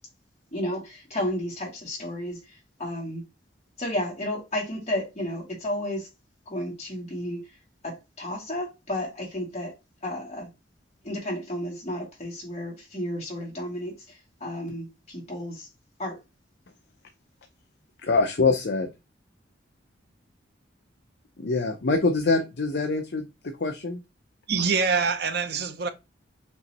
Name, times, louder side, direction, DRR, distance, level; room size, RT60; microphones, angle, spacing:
voice 1, 0.5-3.2 3.8-6.1 6.5-7.4 7.8-9.7 10.0-10.5 11.0-15.7 16.0-16.2, left 1 dB, 35° left, 2.1 m, -32 dB
voice 2, 18.0-18.9 21.4-24.0, left 3 dB, 55° left, 0.6 m, -24 dB
voice 3, 24.5-25.9, right 5 dB, 55° right, 0.7 m, -25 dB
5.4 x 3.0 x 2.9 m
head